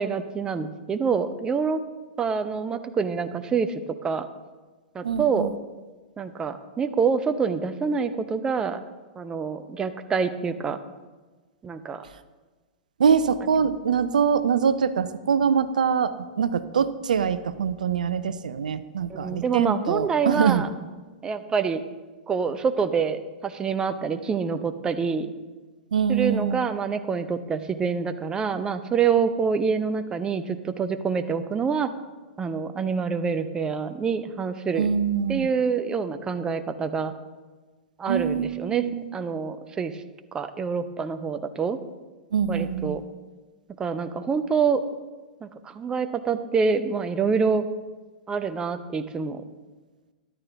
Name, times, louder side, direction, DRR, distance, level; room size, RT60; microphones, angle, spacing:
voice 1, 0.0-1.8 2.2-3.7 4.0-4.3 4.9-5.5 6.2-8.8 9.2-10.8 11.6-12.0 19.1-20.7 21.2-21.8 22.3-25.3 26.1-31.9 32.4-34.9 35.3-37.1 38.0-38.8 39.1-40.0 40.3-41.8 42.5-43.0 43.8-44.8 45.4-47.6 48.3-49.4, right 5 dB, 20° right, 10 dB, 0.8 m, -26 dB
voice 2, 5.0-5.5 13.0-20.6 25.9-26.7 34.8-35.5 38.1-39.0 42.3-43.0, right 7 dB, 70° right, 13 dB, 0.6 m, -24 dB
13.5 x 11.5 x 3.5 m, 1.3 s
figure-of-eight pair, 100°, 4 cm